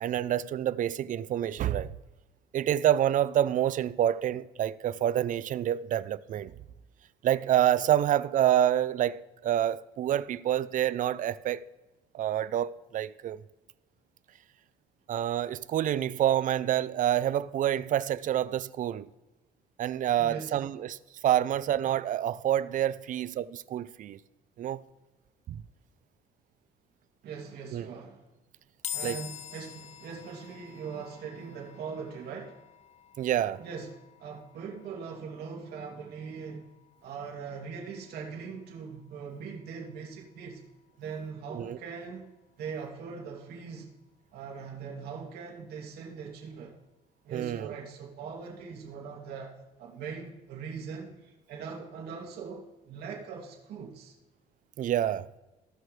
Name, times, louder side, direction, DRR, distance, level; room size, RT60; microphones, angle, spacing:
voice 1, 0.0-1.9 2.5-6.5 7.2-11.6 12.1-13.4 15.1-19.1 19.8-21.0 21.2-24.2 24.6-24.8 27.7-27.9 29.0-29.2 33.2-33.6 41.5-41.8 47.3-47.7 54.8-55.3, right 11 dB, 50° right, 0.5 m, -27 dB
voice 2, 20.2-20.6 27.2-28.2 28.9-32.6 33.6-36.6 37.0-40.6 41.0-42.3 42.6-43.9 44.3-46.8 47.2-49.5 49.8-54.1, right 5 dB, 70° right, 2.7 m, -41 dB
sound 1, 28.8-42.2, left 10 dB, 40° left, 0.7 m, -48 dB
18.0 x 6.2 x 3.3 m
cardioid pair, 110°, 17 cm